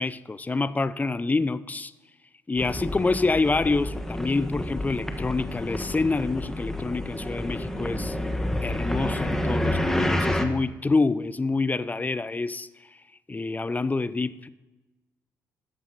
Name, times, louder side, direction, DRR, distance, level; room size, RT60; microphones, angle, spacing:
voice 1, 0.0-1.9 2.5-8.2 8.6-12.7 13.3-14.5, left 3 dB, 20° left, 0.5 m, -27 dB
sound 1, 2.6-10.5, left 1 dB, 5° left, 1.3 m, -29 dB
11.5 x 7.1 x 4.0 m
supercardioid pair, 60°, 8 cm